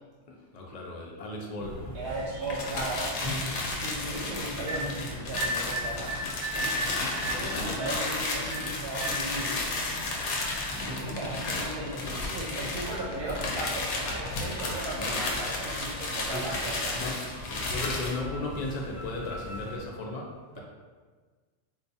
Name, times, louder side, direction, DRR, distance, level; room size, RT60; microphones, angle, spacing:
voice 1, 0.3-2.0 4.4-4.6 14.9-15.3 15.9-16.4 16.9-17.3 17.6-20.6, left 2 dB, 60° left, -1 dB, 0.4 m, -36 dB
sound 1, 1.6-19.8, equal, 20° right, 0.7 m, -38 dB
voice 2, 1.9-3.5 3.8-6.2 6.5-9.6 10.8-17.1, right 2 dB, 70° right, -5 dB, 0.8 m, -37 dB
sound 2, 2.4-18.2, left 2 dB, 85° left, 0.9 m, -33 dB
3.9 x 2.3 x 2.6 m, 1.4 s
omnidirectional pair, 1.2 m